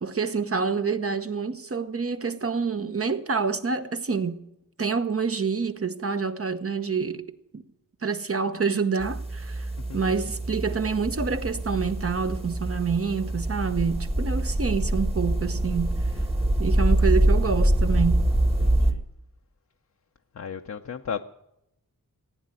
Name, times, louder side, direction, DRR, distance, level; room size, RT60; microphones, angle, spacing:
voice 1, 0.0-4.4 4.8-7.6 8.0-16.0 16.6-18.3, right 5 dB, 40° right, 0.9 m, -27 dB
sound 1, 9.0-18.9, right 1 dB, 15° right, 1.3 m, -25 dB
voice 2, 18.6-19.0 20.3-21.2, left 7 dB, 50° left, 0.7 m, -35 dB
15.5 x 9.7 x 9.2 m
wide cardioid pair, 95°, 35 cm